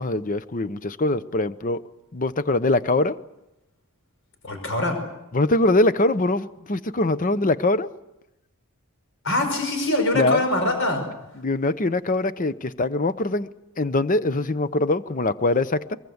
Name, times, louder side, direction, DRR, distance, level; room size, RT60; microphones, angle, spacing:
voice 1, 0.0-1.8 2.1-3.2 5.3-7.9 10.1-10.4 11.3-13.5 13.8-16.0, left 2 dB, 40° left, 14 dB, 0.8 m, -23 dB
voice 2, 4.4-5.0 9.2-11.0, left 2 dB, 60° left, 5 dB, 5.3 m, -23 dB
23.5 x 22.5 x 8.0 m, 0.92 s
head